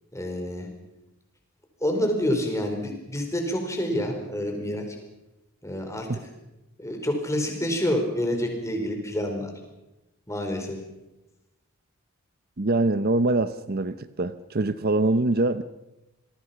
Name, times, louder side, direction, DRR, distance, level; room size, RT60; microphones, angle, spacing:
voice 1, 0.1-0.7 1.8-5.0 5.6-6.2 6.8-9.5 10.3-10.8, equal, 15° left, 3 dB, 4.9 m, -28 dB
voice 2, 12.6-15.6, right 2 dB, 45° right, 13 dB, 0.8 m, -24 dB
27.5 x 22.0 x 5.9 m, 0.94 s
head